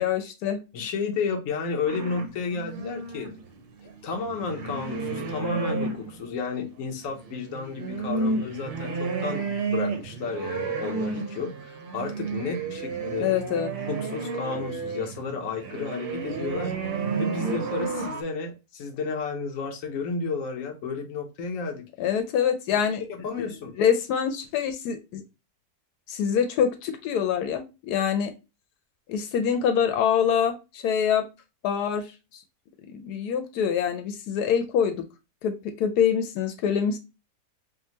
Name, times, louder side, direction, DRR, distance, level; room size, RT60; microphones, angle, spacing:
voice 1, 0.0-0.6 13.2-13.7 22.0-23.0 23.4-23.5 23.8-25.2 26.1-28.3 29.1-31.2 31.6-32.4 32.9-35.0 35.4-37.0, left 8 dB, 90° left, 1.2 m, -25 dB
voice 2, 0.7-3.3 4.0-9.4 9.7-13.3 13.9-16.9 17.2-21.8 23.1-23.8, left 4 dB, 60° left, 1.2 m, -32 dB
sound 1, 1.9-6.3 7.0-18.2, right 4 dB, 55° right, 0.6 m, -31 dB
5.2 x 2.2 x 2.8 m
omnidirectional pair, 1.7 m